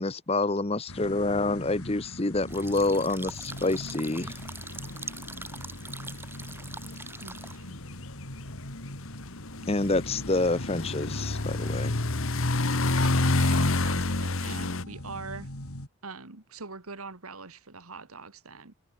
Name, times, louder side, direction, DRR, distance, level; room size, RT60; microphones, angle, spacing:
voice 1, 0.0-4.3 9.7-12.0, left 2 dB, 25° left, 0.8 m, -27 dB
sound 1, 0.9-15.9, left 1 dB, 85° left, 6.4 m, -42 dB
sound 2, 2.5-7.6, right 3 dB, 10° right, 4.5 m, -43 dB
sound 3, 3.5-14.8, left 2 dB, 65° left, 1.5 m, -29 dB
voice 2, 7.2-7.8 9.5-9.7 13.0-15.6 16.0-18.7, right 4 dB, 80° right, 2.3 m, -43 dB
head